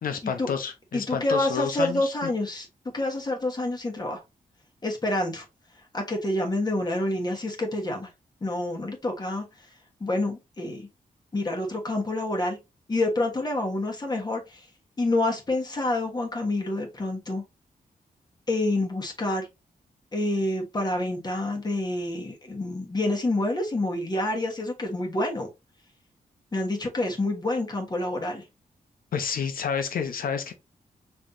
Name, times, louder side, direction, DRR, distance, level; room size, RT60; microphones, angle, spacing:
voice 1, 0.0-2.3 29.1-30.5, left 7 dB, 75° left, 1.0 m, -29 dB
voice 2, 0.9-2.7 2.9-4.2 4.8-5.4 5.9-8.1 8.4-9.4 10.0-10.9 11.3-12.6 12.9-14.6 15.0-17.4 18.5-19.5 20.1-25.5 26.5-28.4, left 2 dB, 30° left, 1.3 m, -27 dB
5.3 x 3.4 x 2.7 m
wide cardioid pair, 120°, 15 cm